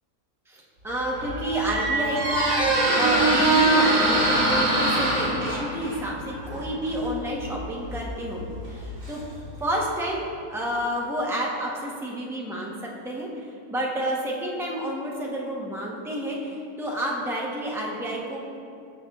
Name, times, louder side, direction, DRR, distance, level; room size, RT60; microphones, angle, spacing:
voice 1, 0.5-9.2 9.6-18.6, equal, 5° right, -3 dB, 0.4 m, -30 dB
Squeak, 0.9-9.7, right 2 dB, 70° right, 2.3 m, -24 dB
12.5 x 5.7 x 2.3 m, 2.4 s
omnidirectional pair, 1.7 m